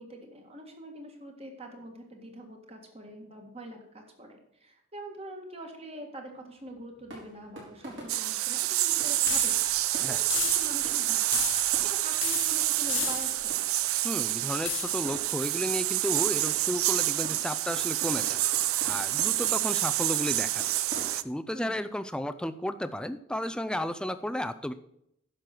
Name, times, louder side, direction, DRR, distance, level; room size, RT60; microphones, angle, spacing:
voice 1, 0.0-9.6 10.1-13.5 21.5-21.9, right 1 dB, 30° right, 3 dB, 1.8 m, -44 dB
sound 1, 6.3-21.1, right 1 dB, 60° right, 4.4 m, -48 dB
sound 2, 8.1-21.2, right 15 dB, 85° right, 0.5 m, -28 dB
sound 3, 9.3-9.9 10.3-10.9 11.3-11.9 12.2-13.5 14.6-15.2, left 12 dB, 65° left, 0.9 m, -34 dB
voice 2, 14.0-18.4 18.8-20.6 21.1-24.7, left 1 dB, 5° left, 11 dB, 0.4 m, -33 dB
10.5 x 6.5 x 6.0 m, 0.77 s
head